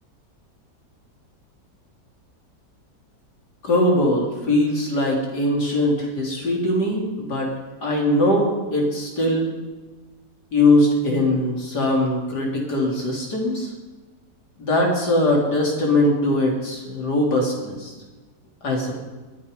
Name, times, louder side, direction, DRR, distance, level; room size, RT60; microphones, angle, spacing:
voice 1, 3.6-7.5 7.8-9.5 10.5-13.7 14.6-17.9 18.6-18.9, left 1 dB, 70° left, 0 dB, 3.9 m, -21 dB
22.0 x 9.8 x 5.3 m, 1.2 s
omnidirectional pair, 1.8 m